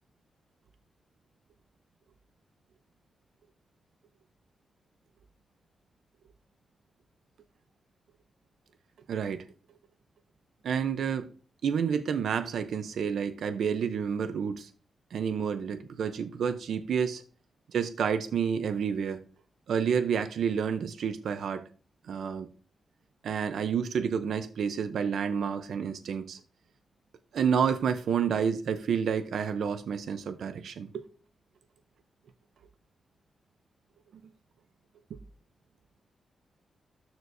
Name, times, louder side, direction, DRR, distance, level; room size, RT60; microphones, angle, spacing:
voice 1, 9.1-9.4 10.6-11.3 11.6-14.7 15.1-17.2 17.7-19.2 19.7-21.7 22.1-22.5 23.2-26.4 27.3-31.1 35.1-35.2, right 7 dB, 80° right, 0.7 m, -29 dB
13.0 x 4.5 x 2.7 m
wide cardioid pair, 130°, 0 cm